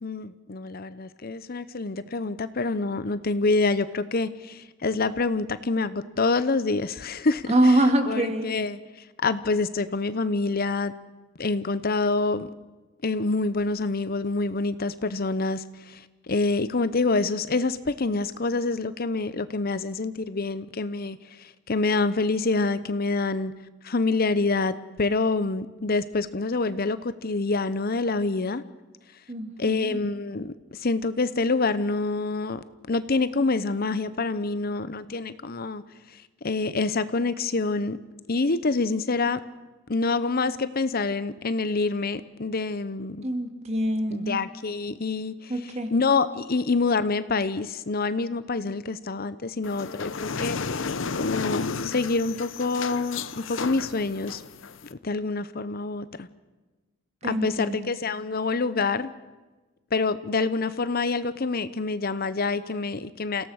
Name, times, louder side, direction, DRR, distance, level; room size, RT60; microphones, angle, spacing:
voice 1, 0.0-8.8 9.2-10.9 11.4-12.5 13.0-23.5 23.8-28.6 29.6-35.8 36.4-38.0 38.3-39.4 39.9-43.2 44.1-50.9 51.2-54.4 54.9-56.3 57.2-59.1 59.9-63.5, left 3 dB, 50° left, 14 dB, 0.8 m, -27 dB
voice 2, 7.5-8.5 29.3-30.0 43.2-44.4 45.5-45.9 57.2-57.9, right 1 dB, 35° right, 6 dB, 2.5 m, -24 dB
sound 1, 49.6-54.9, left 4 dB, 75° left, 0.8 m, -32 dB
28.5 x 17.0 x 6.5 m, 1.2 s
head